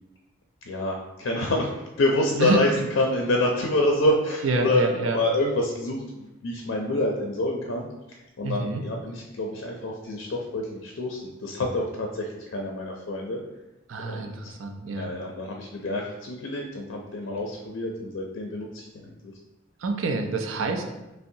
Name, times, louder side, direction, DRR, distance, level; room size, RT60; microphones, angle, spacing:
voice 1, 0.7-13.4 14.0-14.5 14.8-19.3, left 1 dB, 80° left, 0 dB, 0.5 m, -27 dB
voice 2, 4.4-5.2 8.4-8.8 13.9-15.1 19.8-20.9, right 3 dB, 85° right, 4 dB, 0.5 m, -27 dB
5.4 x 2.1 x 2.6 m, 0.99 s
head